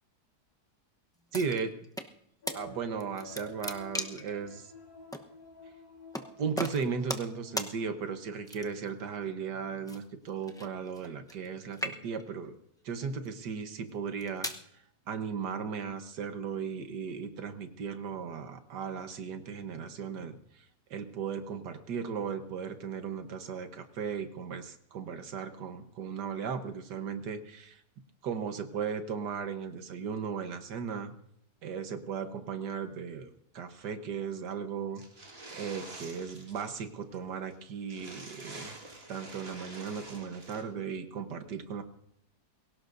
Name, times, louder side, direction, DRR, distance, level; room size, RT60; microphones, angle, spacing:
sound 1, 1.3-2.1 2.5-2.6 3.0-4.3 5.1-5.3 6.1-6.3 6.6-7.3 7.6-7.7 8.5-8.9 9.9-11.5 11.7-12.3 13.0-13.3 14.0-14.6, equal, 5° left, 0.4 m, -37 dB
voice 1, 1.3-1.8 2.5-4.7 6.4-12.5 12.8-20.6 20.9-27.8 28.2-31.1 31.6-35.0 35.5-38.8 39.1-41.8, right 6 dB, 85° right, 8 dB, 1.7 m, -36 dB
sound 2, 2.4-8.6 9.0-9.1, left 3 dB, 65° left, 4.0 m, -51 dB
sound 3, 34.9-36.9 37.1-37.2 37.5-37.6 37.9-40.6, right 2 dB, 35° right, 2.2 m, -47 dB
22.5 x 17.5 x 2.6 m, 0.70 s
omnidirectional pair, 1.8 m